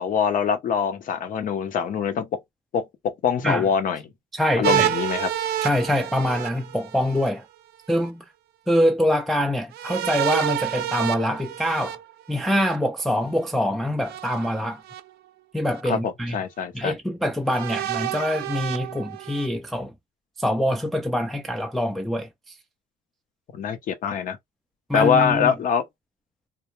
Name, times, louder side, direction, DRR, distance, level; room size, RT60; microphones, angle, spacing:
voice 1, 0.0-2.4 2.7-4.0 4.6-5.3 15.9-16.9 23.5-24.4 24.9-25.8, left 7 dB, 55° left, 0.7 m, -24 dB
voice 2, 4.3-4.9 5.6-7.4 7.9-8.2 8.7-12.0 12.3-14.8 15.5-16.4 16.7-19.9 20.4-22.3 24.9-25.5, equal, ahead, 0.3 m, -24 dB
sound 1, 4.6-7.3 9.7-12.8 14.0-15.0 15.7-15.8 17.5-19.5, right 12 dB, 70° right, 0.4 m, -28 dB
2.2 x 2.1 x 3.0 m
cardioid pair, 110°, 17 cm